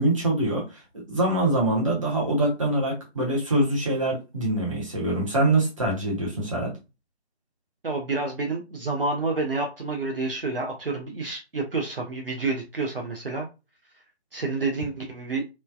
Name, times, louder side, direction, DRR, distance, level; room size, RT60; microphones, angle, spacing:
voice 1, 0.0-6.7, right 1 dB, 30° right, -3 dB, 0.9 m, -24 dB
voice 2, 7.8-13.5 14.3-15.4, right 3 dB, 55° right, 1 dB, 0.7 m, -29 dB
3.1 x 2.2 x 2.3 m, 0.27 s
figure-of-eight pair, 155°, 33 cm